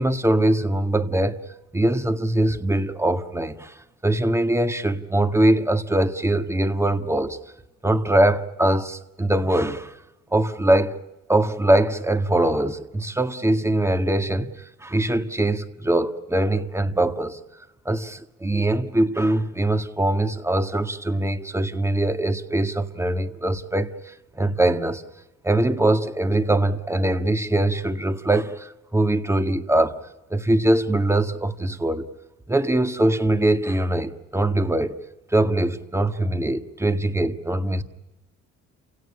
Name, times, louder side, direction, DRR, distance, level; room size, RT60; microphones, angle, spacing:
voice 1, 0.0-1.4 1.7-7.4 7.8-9.9 10.3-11.0 11.3-17.4 17.8-25.0 25.4-30.0 30.3-32.1 32.5-35.0 35.3-37.8, right 1 dB, 10° right, 1.7 m, -22 dB
29.0 x 17.0 x 9.9 m
cardioid pair, 90°, 30 cm